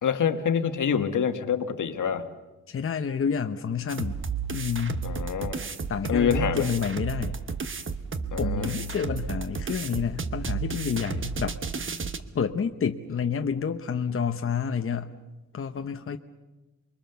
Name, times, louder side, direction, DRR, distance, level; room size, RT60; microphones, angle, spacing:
voice 1, 0.0-2.3 5.0-5.6 6.1-6.7 8.3-8.7, left 7 dB, 80° left, 8 dB, 1.6 m, -26 dB
voice 2, 2.7-4.2 4.5-5.0 5.9-7.4 8.4-11.9 12.3-15.1 15.5-16.2, left 6 dB, 45° left, 6 dB, 0.9 m, -29 dB
sound 1, 3.9-12.2, right 4 dB, 40° right, 1.1 m, -32 dB
28.5 x 23.0 x 6.9 m, 1.1 s
wide cardioid pair, 180°, 31 cm